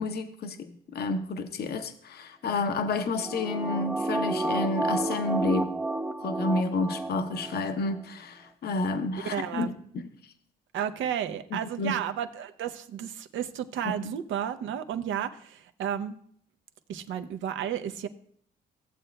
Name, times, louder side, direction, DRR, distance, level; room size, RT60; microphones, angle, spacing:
voice 1, 0.0-5.8 6.2-10.1 11.5-11.9 13.8-14.1, left 3 dB, 55° left, 7 dB, 0.7 m, -30 dB
sound 1, 2.8-7.6 7.9-8.0, right 2 dB, 10° right, 0.5 m, -31 dB
voice 2, 9.2-9.7 10.7-16.1 16.9-18.1, right 9 dB, 75° right, 8 dB, 0.7 m, -32 dB
15.5 x 7.7 x 2.2 m, 0.62 s
cardioid pair, 90°, 20 cm